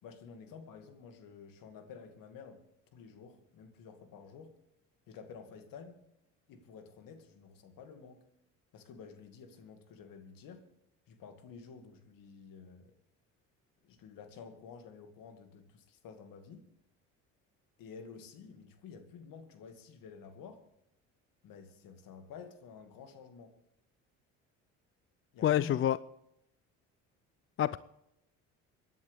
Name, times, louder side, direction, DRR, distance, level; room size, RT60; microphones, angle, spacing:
voice 1, 0.0-2.6 2.9-4.5 5.1-6.0 6.5-8.2 8.7-10.6 11.1-12.9 13.8-16.7 17.8-20.6 21.4-23.5 25.3-25.8, left 5 dB, 65° left, 2.3 m, -51 dB
voice 2, 25.4-26.0 27.6-27.8, left 11 dB, 35° left, 0.4 m, -27 dB
25.5 x 10.5 x 3.5 m
hypercardioid pair, 65°, 36 cm